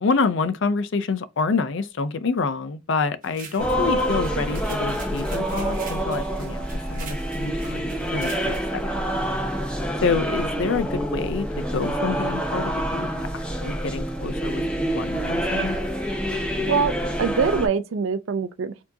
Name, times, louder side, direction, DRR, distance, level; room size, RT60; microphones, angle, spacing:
voice 1, 0.0-8.8 10.0-13.1 13.3-15.8, left 4 dB, 60° left, 0.5 m, -27 dB
sound 1, 3.2-8.8, right 5 dB, 40° right, 1.0 m, -44 dB
sound 2, 3.6-17.7, equal, 5° left, 0.7 m, -27 dB
voice 2, 16.7-18.8, right 5 dB, 65° right, 0.4 m, -24 dB
4.4 x 2.8 x 2.7 m
head